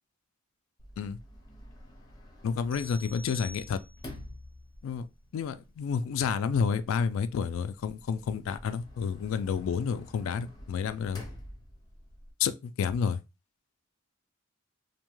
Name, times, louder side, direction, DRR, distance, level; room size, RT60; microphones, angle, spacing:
Sliding door, 0.8-12.3, left 1 dB, 20° left, 0.7 m, -50 dB
voice 1, 2.4-3.8 4.8-5.1 5.3-11.2 12.4-13.2, left 6 dB, 65° left, 0.3 m, -30 dB
sound 1, 2.7-4.2, left 1 dB, 70° right, 1.2 m, -48 dB
2.7 x 2.2 x 3.0 m
head